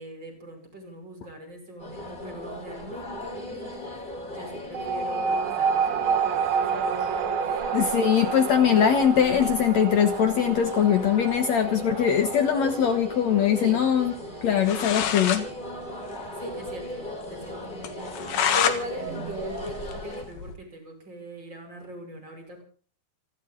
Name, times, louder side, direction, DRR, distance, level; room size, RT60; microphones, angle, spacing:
voice 1, 0.0-6.8 7.4-7.6 13.6-13.8 16.4-22.6, equal, 25° right, 3 dB, 5.7 m, -40 dB
sound 1, 1.8-20.2, equal, 10° left, 2.8 m, -38 dB
sound 2, 4.7-15.7, right 6 dB, 65° right, 2.9 m, -29 dB
voice 2, 7.7-14.1 14.4-15.4, left 8 dB, 90° left, 6 dB, 1.5 m, -22 dB
sound 3, 14.4-14.5 14.6-15.4 15.8-15.9 16.1-16.2 16.6-16.7 17.1-17.2 17.8-18.8 19.2-20.5, left 9 dB, 65° left, 3.3 m, -27 dB
28.5 x 11.5 x 3.9 m, 0.42 s
omnidirectional pair, 5.2 m